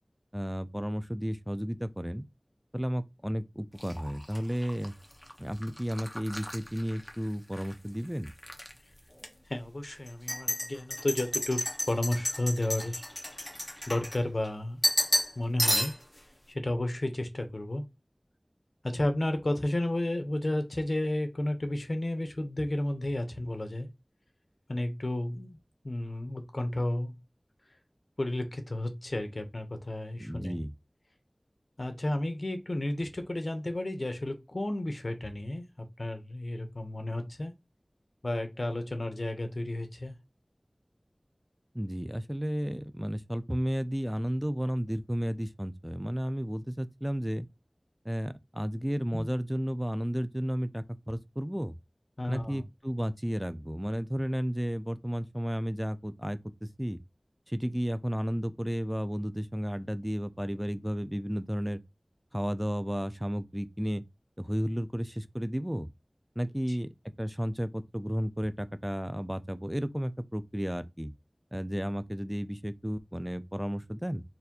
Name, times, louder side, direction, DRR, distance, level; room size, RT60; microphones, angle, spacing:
voice 1, 0.3-2.2 2.7-4.9 5.4-8.3 30.2-30.7 41.7-47.5 48.0-51.7 52.3-57.0 57.5-61.8 62.3-64.0 64.4-65.9 66.4-66.9 67.2-71.1 71.5-74.2, equal, 5° right, 0.3 m, -33 dB
sound 1, 3.8-7.7 8.0-8.7 9.2-9.3 10.1-14.5 14.8-15.3 15.6-16.2, equal, 20° left, 0.8 m, -32 dB
voice 2, 9.5-13.0 13.9-14.8 15.4-15.9 16.5-17.8 18.8-23.9 24.7-25.6 25.8-27.1 28.2-30.6 31.8-37.5 38.2-40.1 49.1-49.3 52.2-52.6 66.7-66.8, left 1 dB, 65° left, 0.7 m, -32 dB
4.1 x 2.5 x 2.7 m
wide cardioid pair, 45°, 0 cm